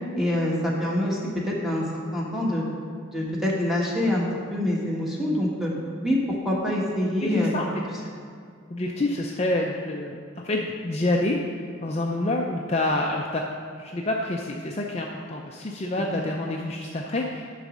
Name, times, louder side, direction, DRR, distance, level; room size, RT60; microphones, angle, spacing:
voice 1, 0.2-2.6 3.1-4.2 4.5-5.7 6.0-7.5, left 1 dB, ahead, -4 dB, 1.3 m, -25 dB
voice 2, 7.2-7.7 8.0-8.1 8.7-11.4 11.8-13.4 13.8-17.5, left 2 dB, 30° left, -1 dB, 0.5 m, -27 dB
10.0 x 4.1 x 6.2 m, 2.2 s
head